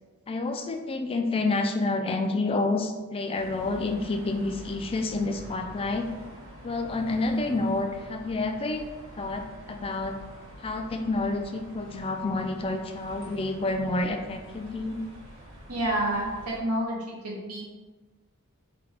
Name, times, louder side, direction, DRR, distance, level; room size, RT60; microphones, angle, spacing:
voice 1, 0.3-6.1 6.6-8.9 9.2-10.2 10.6-15.0, left 2 dB, 25° left, 4 dB, 0.3 m, -29 dB
sound 1, 3.3-16.6, equal, 60° right, 1.2 m, -46 dB
voice 2, 15.7-17.6, right 1 dB, 85° right, -3 dB, 1.1 m, -29 dB
4.8 x 2.4 x 3.4 m, 1.2 s
head